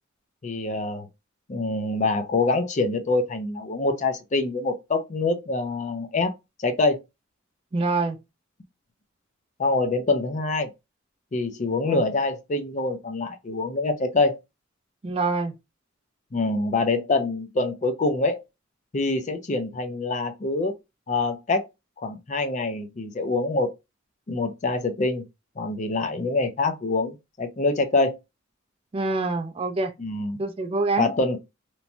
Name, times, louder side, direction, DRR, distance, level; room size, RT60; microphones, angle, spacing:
voice 1, 0.4-1.1 1.5-6.3 6.6-7.0 9.6-10.7 11.3-14.4 16.3-18.4 18.9-20.7 21.1-21.7 22.0-23.7 24.3-25.2 25.6-28.2 30.0-30.4 31.0-31.4, left 3 dB, 35° left, 0.5 m, -25 dB
voice 2, 7.7-8.2 11.8-12.0 15.0-15.6 28.9-29.9 30.4-31.1, right 3 dB, 30° right, 0.3 m, -25 dB
3.0 x 2.2 x 2.6 m
head